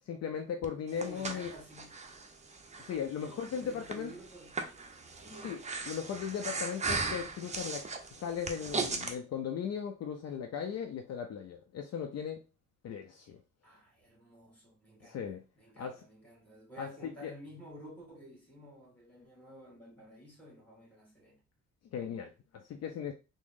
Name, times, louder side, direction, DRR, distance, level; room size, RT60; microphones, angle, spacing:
voice 1, 0.0-1.5 2.8-4.1 5.4-5.6 5.9-7.9 8.2-12.4 12.8-13.4 15.0-15.4 15.8-16.0 16.8-17.3 21.9-23.1, left 7 dB, 55° left, 0.5 m, -37 dB
Breathing, 0.6-9.1, right 4 dB, 25° right, 0.6 m, -38 dB
voice 2, 0.9-2.1 3.2-4.9 5.2-5.7 13.6-15.2 15.6-21.4, right 1 dB, 5° left, 2.1 m, -52 dB
3.5 x 2.0 x 3.6 m
cardioid pair, 90°, 30 cm